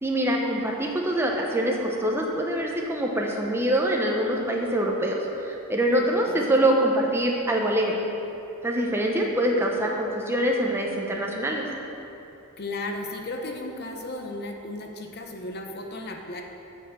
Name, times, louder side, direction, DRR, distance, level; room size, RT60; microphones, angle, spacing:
voice 1, 0.0-8.0 8.6-11.7, right 1 dB, 10° right, -1 dB, 0.8 m, -24 dB
voice 2, 6.0-6.6 12.6-16.4, left 2 dB, 45° left, 3 dB, 0.8 m, -35 dB
6.7 x 6.2 x 6.9 m, 2.8 s
head